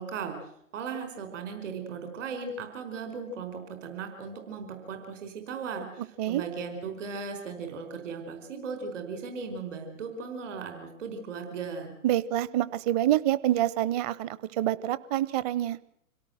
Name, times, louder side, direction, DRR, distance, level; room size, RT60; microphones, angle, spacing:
voice 1, 0.0-11.9, right 5 dB, 55° right, 6 dB, 5.0 m, -37 dB
voice 2, 12.0-15.8, right 13 dB, 25° right, 17 dB, 0.9 m, -27 dB
26.5 x 17.5 x 7.8 m, 0.73 s
figure-of-eight pair, 120°, 44 cm